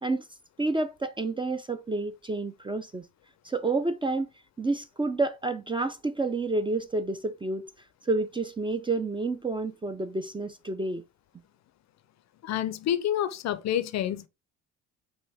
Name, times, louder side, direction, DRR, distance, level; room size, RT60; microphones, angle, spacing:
voice 1, 0.6-3.0 3.4-4.3 4.6-7.7 8.1-11.0, right 3 dB, 15° right, 0.5 m, -29 dB
voice 2, 12.4-14.3, left 11 dB, 45° left, 0.6 m, -28 dB
5.0 x 2.6 x 3.5 m
hypercardioid pair, 50°, 37 cm